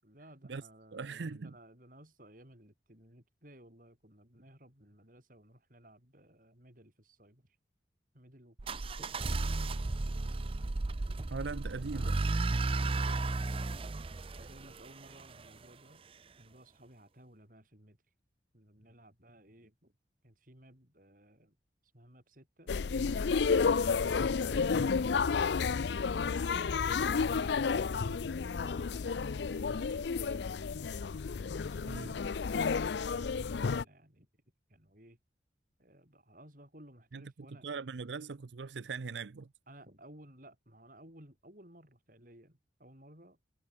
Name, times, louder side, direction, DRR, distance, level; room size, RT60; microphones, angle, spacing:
voice 1, 0.0-7.6 8.1-9.3 12.3-13.5 14.4-16.1 16.4-18.0 18.5-19.9 20.2-21.6 21.9-23.6 26.8-29.4 29.8-30.2 31.6-34.3 34.7-35.2 35.8-37.7 39.7-43.4, right 1 dB, 45° right, 7.4 m, -58 dB
voice 2, 0.9-1.5 11.3-12.7 31.9-32.1 37.1-37.2 37.6-39.5, right 4 dB, 75° right, 0.6 m, -40 dB
sound 1, 8.6-15.5, right 2 dB, 30° right, 0.5 m, -34 dB
sound 2, 22.7-33.8, left 5 dB, 70° left, 0.5 m, -31 dB
head